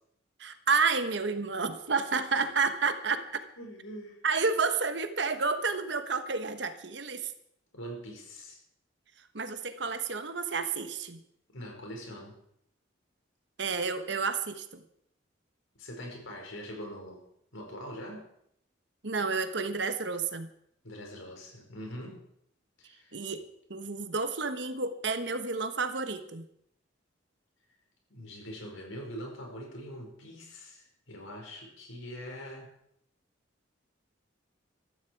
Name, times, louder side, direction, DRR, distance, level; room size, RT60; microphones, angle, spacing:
voice 1, 0.4-3.4 4.2-7.3 9.3-11.2 13.6-14.8 19.0-20.5 23.1-23.4 23.7-26.4, right 4 dB, 60° right, 9 dB, 1.2 m, -30 dB
voice 2, 3.6-4.2 7.7-8.6 11.5-12.3 15.8-17.2 17.5-18.2 20.8-22.2 22.8-23.2 28.1-32.7, equal, 85° left, 1 dB, 5.0 m, -43 dB
15.0 x 14.0 x 4.7 m, 0.72 s
head